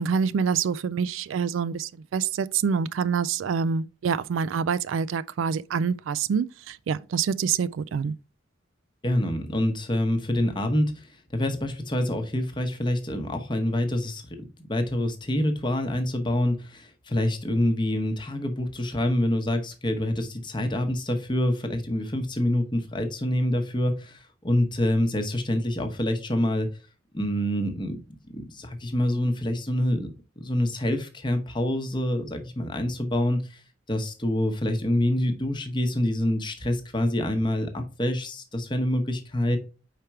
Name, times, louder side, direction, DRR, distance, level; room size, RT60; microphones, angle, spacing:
voice 1, 0.0-8.1, right 6 dB, 75° right, 0.3 m, -26 dB
voice 2, 9.0-11.1 11.3-26.7 27.1-28.0 28.3-33.6 33.9-39.6, left 1 dB, 25° left, 0.9 m, -26 dB
5.0 x 4.4 x 4.6 m
head